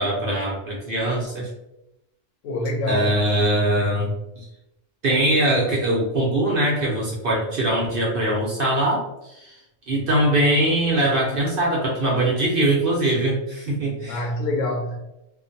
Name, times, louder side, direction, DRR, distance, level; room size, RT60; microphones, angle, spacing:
voice 1, 0.0-1.5 2.9-4.4 5.0-9.6 9.9-14.2, right 1 dB, 55° right, -4 dB, 0.7 m, -22 dB
voice 2, 2.4-3.2 14.1-15.0, left 2 dB, 75° left, 2 dB, 0.9 m, -25 dB
2.5 x 2.2 x 2.5 m, 0.88 s
omnidirectional pair, 1.4 m